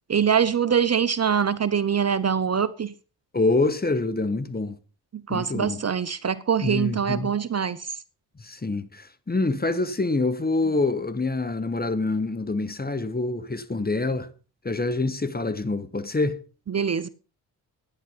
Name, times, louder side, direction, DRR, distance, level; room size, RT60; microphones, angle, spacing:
voice 1, 0.1-2.9 5.1-8.0 16.7-17.1, right 7 dB, 35° right, 1.0 m, -24 dB
voice 2, 3.3-4.8 5.3-5.8 6.6-7.3 8.4-14.3 14.6-16.4, left 3 dB, 20° left, 1.8 m, -26 dB
13.0 x 10.0 x 5.7 m
hypercardioid pair, 50°, 44 cm